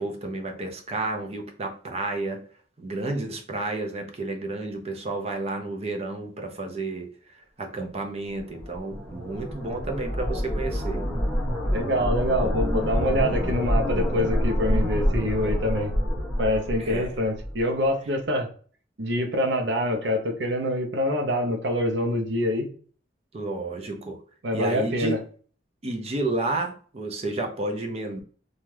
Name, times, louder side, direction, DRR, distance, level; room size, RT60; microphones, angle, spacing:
voice 1, 0.0-2.5 2.8-7.1 7.6-11.1 16.8-17.1 23.3-24.2 24.5-25.2 25.8-28.2, right 2 dB, 35° right, 0.5 m, -31 dB
sound 1, 8.4-17.6, equal, 5° right, 1.2 m, -27 dB
voice 2, 11.7-15.9 16.4-18.5 19.0-22.7 24.4-25.2, left 1 dB, 70° right, 0.6 m, -25 dB
2.7 x 2.3 x 3.1 m
head